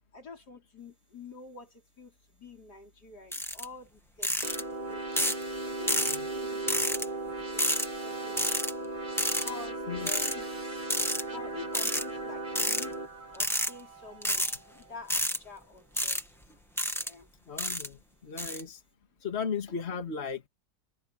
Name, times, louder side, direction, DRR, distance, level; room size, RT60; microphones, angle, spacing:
voice 1, 0.1-5.4 5.7-7.0 7.5-8.9 9.4-10.7 11.2-13.0 13.3-16.4 16.9-17.3 19.1-19.2, left 4 dB, 85° left, 5.6 m, -48 dB
sound 1, 3.3-3.6 4.2-4.6 5.2-5.4 5.9-6.2 6.7-7.1 7.6-7.9 8.4-8.7 9.2-9.5 10.1-10.3 10.9-11.2 11.7-12.0 12.6-12.9 13.3-13.7 14.2-14.6 15.1-15.4 16.0-16.2 16.8-17.1 17.6-17.9 18.4-18.6, equal, ahead, 1.5 m, -29 dB
sound 2, 4.4-14.9, right 2 dB, 30° right, 2.5 m, -37 dB
voice 2, 17.5-18.8 19.2-20.5, left 6 dB, 40° left, 2.3 m, -35 dB
omnidirectional pair, 1.7 m